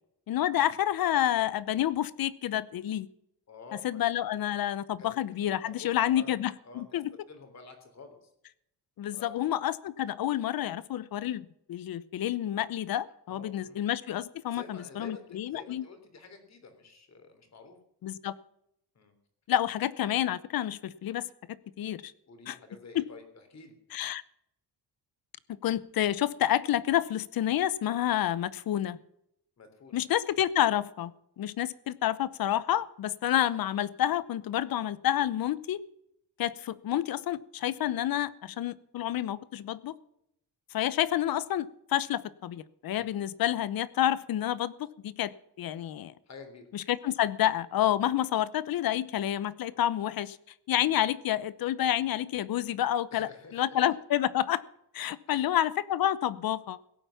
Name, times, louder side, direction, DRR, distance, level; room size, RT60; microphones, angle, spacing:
voice 1, 0.3-3.1 3.8-7.1 9.0-15.8 18.0-18.4 19.5-21.3 21.8-22.1 22.5-22.6 22.9-23.0 23.9-24.2 25.6-29.0 29.9-31.1 31.4-35.8 36.4-39.9 40.7-46.1 46.7-50.4 50.7-54.6 54.9-56.8, left 12 dB, 60° left, 18 dB, 0.9 m, -29 dB
voice 2, 3.5-4.0 5.0-5.1 5.8-6.3 6.6-7.0 7.3-8.3 9.1-9.4 13.3-13.9 14.5-17.8 18.9-19.1 22.3-24.0 29.6-30.0 42.9-43.2 46.2-46.7 53.1-53.8 55.3-55.5, left 4 dB, 40° left, 7 dB, 3.4 m, -49 dB
17.0 x 9.1 x 7.1 m, 0.76 s
cardioid pair, 150°, 40 cm